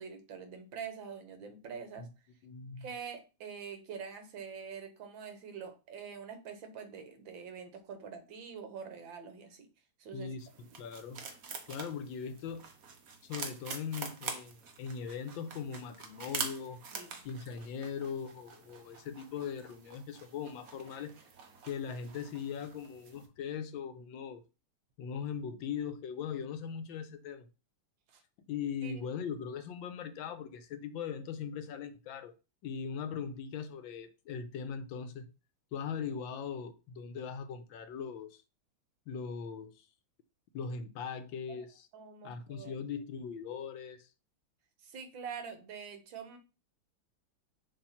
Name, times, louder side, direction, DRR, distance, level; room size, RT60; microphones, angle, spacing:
voice 1, 0.0-2.1 2.8-9.7 10.0-10.4 17.0-17.1 28.1-28.2 28.8-29.1 41.5-41.6 41.9-42.8 44.8-46.4, right 6 dB, 70° right, 1.8 m, -45 dB
voice 2, 2.4-2.9 10.1-11.2 11.7-12.7 13.2-16.8 17.2-21.1 21.6-24.4 25.0-27.5 28.5-32.3 32.6-35.3 35.7-38.4 39.1-39.9 40.5-41.9 42.2-44.1, left 6 dB, 75° left, 1.4 m, -40 dB
sound 1, 10.4-23.3, right 5 dB, 50° right, 1.2 m, -45 dB
6.9 x 2.8 x 5.7 m
omnidirectional pair, 2.2 m